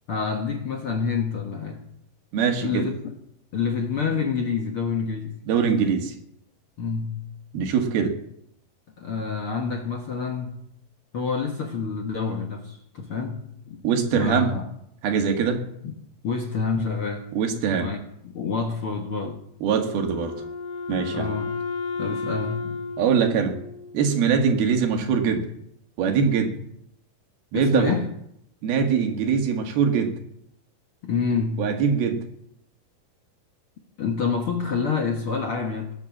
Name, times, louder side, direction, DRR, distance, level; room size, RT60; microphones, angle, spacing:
voice 1, 0.1-1.8 2.4-3.1 3.5-5.3 6.8-7.2 9.0-10.5 11.1-13.8 14.1-14.7 15.8-15.9 16.2-17.3 17.8-19.4 21.1-21.6 22.0-22.8 27.5-28.1 31.0-31.7 34.0-35.9, left 5 dB, 55° left, 3 dB, 1.6 m, -28 dB
voice 2, 2.3-2.9 5.5-6.1 7.5-8.2 13.8-14.5 15.0-15.6 17.3-17.9 19.6-20.4 20.9-21.3 23.0-23.6 23.9-25.5 26.0-26.6 27.5-28.0 28.6-30.2 31.6-32.2, right 6 dB, 80° right, 5 dB, 3.7 m, -22 dB
Wind instrument woodwind instrument, 19.7-24.2, left 4 dB, 75° left, 4.1 m, -33 dB
18.0 x 10.5 x 7.4 m, 0.74 s
omnidirectional pair, 4.3 m